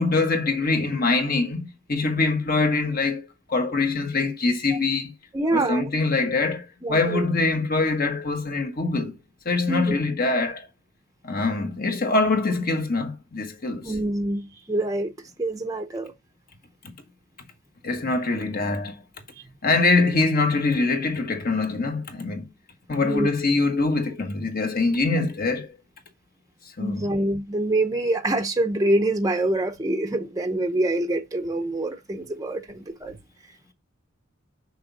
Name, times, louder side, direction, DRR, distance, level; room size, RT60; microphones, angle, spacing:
voice 1, 0.0-5.1 5.5-9.1 9.4-10.7 11.2-13.9 17.8-19.0 19.6-22.4 22.9-25.7 26.8-27.1, left 3 dB, 45° left, 1.5 m, -24 dB
voice 2, 5.3-5.9 6.8-7.2 9.7-10.0 13.8-15.1 15.4-16.1 23.0-23.3 26.8-33.1, right 1 dB, 15° right, 0.7 m, -25 dB
6.2 x 5.9 x 4.1 m
head